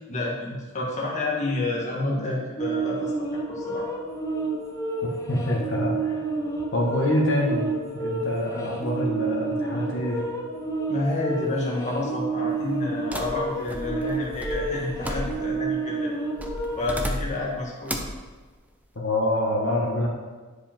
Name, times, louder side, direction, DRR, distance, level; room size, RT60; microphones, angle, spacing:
voice 1, 0.1-3.9 10.9-16.1 16.8-18.0, left 2 dB, 35° left, -5 dB, 1.7 m, -29 dB
sound 1, 2.6-17.1, right 3 dB, 15° left, 1.0 m, -30 dB
voice 2, 5.0-6.2 6.7-10.2 18.9-20.1, left 1 dB, 60° left, -3 dB, 1.6 m, -26 dB
sound 2, 13.1-15.7 16.4-17.5 17.9-18.2, equal, 5° right, 0.7 m, -33 dB
10.0 x 5.0 x 4.5 m, 1.4 s
head